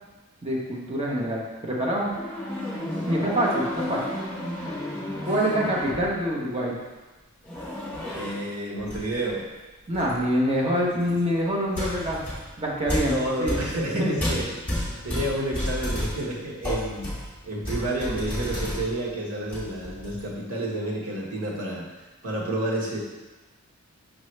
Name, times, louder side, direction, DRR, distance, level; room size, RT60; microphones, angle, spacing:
voice 1, 0.4-2.1 3.1-4.2 5.2-6.8 9.9-12.3 12.6-13.1 13.4-13.6 13.9-14.1, equal, 25° right, -4 dB, 0.9 m, -25 dB
sound 1, 2.1-6.3 7.4-8.4 8.8-9.3 9.9-10.2 11.1-11.2 11.7-19.1 19.4-20.3, left 1 dB, 10° left, 2.1 m, -32 dB
voice 2, 2.9-3.4 8.1-9.5 13.0-14.5 15.0-17.1 17.4-21.8 22.2-23.0, right 1 dB, 80° right, -3 dB, 1.4 m, -30 dB
6.1 x 5.2 x 3.2 m, 1.2 s
head